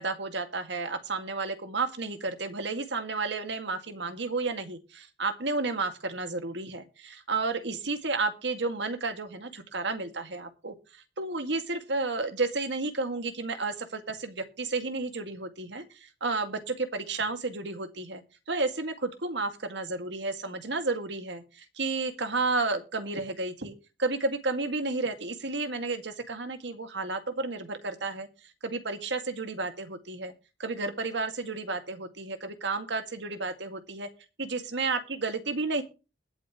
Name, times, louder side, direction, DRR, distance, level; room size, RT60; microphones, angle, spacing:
voice 1, 0.0-10.7 11.2-23.7 24.0-28.3 28.6-30.3 30.6-34.1 34.4-35.8, right 3 dB, 70° right, 8 dB, 2.1 m, -32 dB
20.5 x 8.6 x 3.1 m, 0.31 s
head